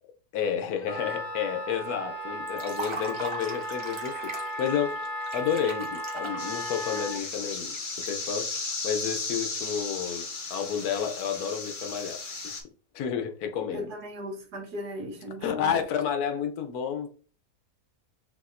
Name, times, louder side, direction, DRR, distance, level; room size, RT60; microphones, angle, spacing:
voice 1, 0.3-5.0 5.3-7.8 8.1-8.5 8.8-12.5 12.9-13.9 15.4-17.1, left 8 dB, 75° left, 1.2 m, -31 dB
Wind instrument woodwind instrument, 0.8-7.2, equal, 5° right, 1.8 m, -35 dB
Liquid, 2.5-8.6, right 3 dB, 35° right, 0.5 m, -41 dB
sound 1, 6.4-12.6, left 3 dB, 45° left, 0.7 m, -35 dB
voice 2, 13.7-15.8, equal, 80° right, 1.7 m, -37 dB
4.9 x 3.4 x 2.5 m
omnidirectional pair, 1.7 m